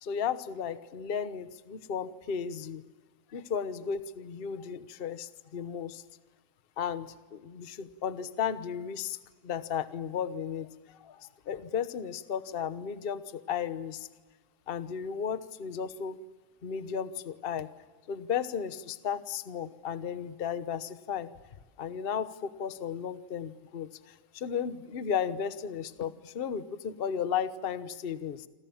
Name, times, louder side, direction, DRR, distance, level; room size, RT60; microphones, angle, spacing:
voice 1, 0.0-2.8 3.3-6.0 6.8-9.2 9.4-14.1 14.7-16.2 16.6-17.7 18.1-21.3 21.8-28.5, left 7 dB, 40° left, 13 dB, 0.9 m, -34 dB
27.0 x 26.5 x 7.2 m, 1.3 s
omnidirectional pair, 2.2 m